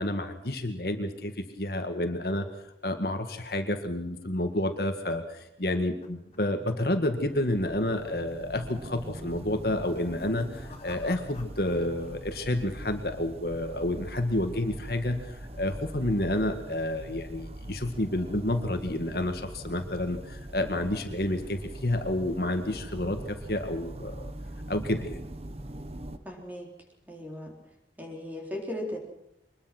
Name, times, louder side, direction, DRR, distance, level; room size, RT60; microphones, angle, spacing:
voice 1, 0.0-2.5 2.8-24.3 24.7-25.2, left 1 dB, 55° left, 6 dB, 1.9 m, -30 dB
sound 1, 4.1-6.7 6.9-7.3 7.6-7.7 8.4-8.8 9.7-12.1 12.4-13.0, left 3 dB, 35° left, 4.1 m, -51 dB
sound 2, 6.8-26.2, right 1 dB, 35° right, 1.2 m, -42 dB
voice 2, 26.2-26.7 27.1-27.6 28.0-29.0, left 1 dB, 10° right, 1 dB, 4.0 m, -37 dB
24.0 x 21.0 x 6.1 m, 0.80 s
head